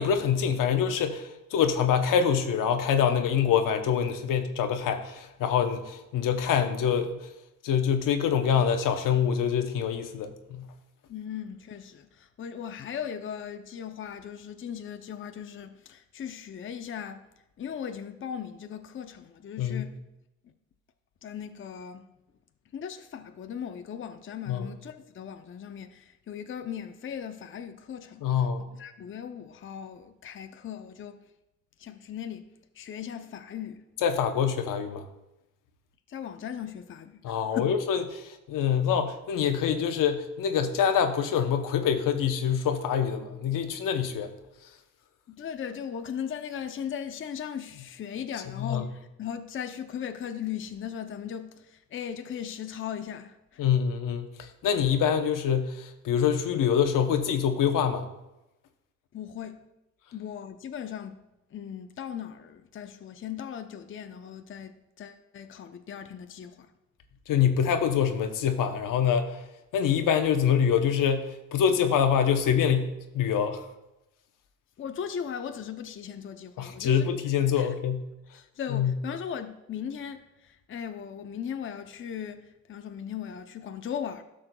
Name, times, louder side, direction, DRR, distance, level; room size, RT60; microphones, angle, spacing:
voice 1, 0.0-7.2 7.6-10.6 19.6-19.9 24.5-24.7 28.2-28.7 34.0-35.1 37.2-44.3 48.6-48.8 53.6-58.1 67.3-69.4 69.7-73.6 76.6-78.0 78.7-78.9, left 8 dB, 80° left, 0.8 m, -25 dB
voice 2, 11.1-17.2 17.6-20.0 20.4-20.5 21.2-22.0 22.7-28.5 28.7-31.2 31.8-33.8 36.1-37.8 45.3-53.6 59.1-59.6 60.1-61.1 61.5-66.7 74.8-77.1 77.6-77.7 78.3-84.2, left 8 dB, 40° left, 0.6 m, -38 dB
12.5 x 6.4 x 2.2 m
cardioid pair, 85°, 32 cm